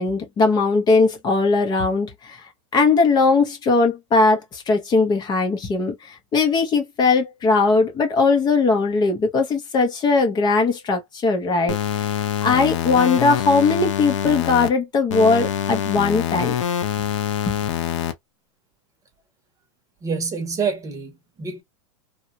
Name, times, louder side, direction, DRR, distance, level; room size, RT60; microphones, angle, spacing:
voice 1, 0.0-12.1 12.4-16.5 17.5-17.6, left 4 dB, 25° left, 0.8 m, -19 dB
sound 1, 11.7-14.7 15.1-18.1, left 10 dB, 80° left, 0.8 m, -25 dB
voice 2, 20.0-21.6, right 5 dB, 20° right, 1.0 m, -27 dB
2.8 x 2.4 x 2.7 m
hypercardioid pair, 125°, 16 cm